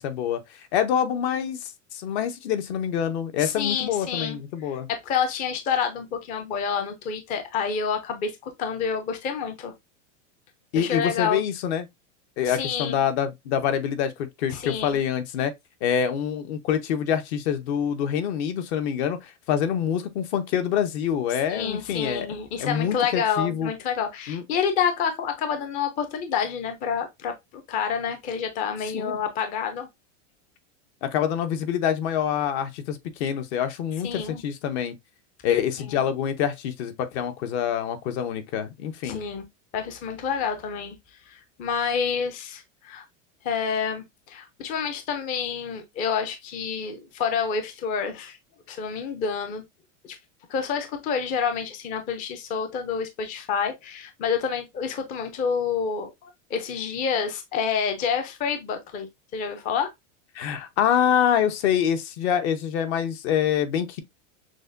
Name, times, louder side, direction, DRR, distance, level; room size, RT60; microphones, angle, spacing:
voice 1, 0.0-4.9 10.7-11.9 12.4-15.5 15.8-22.3 22.6-23.7 24.3-24.4 28.8-29.2 31.0-35.0 35.4-39.2 60.3-64.0, left 9 dB, 60° left, 0.9 m, -26 dB
voice 2, 3.4-4.4 4.6-9.7 10.7-11.4 12.4-13.0 14.5-15.0 21.5-29.9 34.0-34.4 35.9-36.0 39.0-39.4 39.7-40.9 41.3-43.0 43.4-48.4 48.7-49.6 50.0-50.2 50.5-59.9, left 6 dB, 20° left, 0.4 m, -28 dB
6.2 x 2.2 x 2.5 m
supercardioid pair, 155°, 38 cm